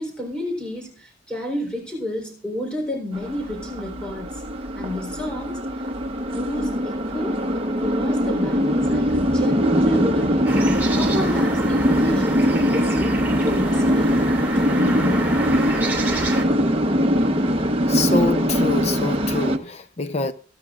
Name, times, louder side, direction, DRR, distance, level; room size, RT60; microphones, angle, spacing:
voice 1, 0.0-4.4 4.8-5.6 6.0-13.1 13.4-15.5, left 1 dB, 5° left, 3.9 m, -30 dB
sound 1, 3.1-19.6, equal, 35° right, 1.1 m, -21 dB
sound 2, 10.5-16.4, right 3 dB, 10° right, 3.2 m, -29 dB
voice 2, 17.9-20.3, left 3 dB, 40° left, 0.7 m, -25 dB
24.0 x 9.1 x 2.5 m
head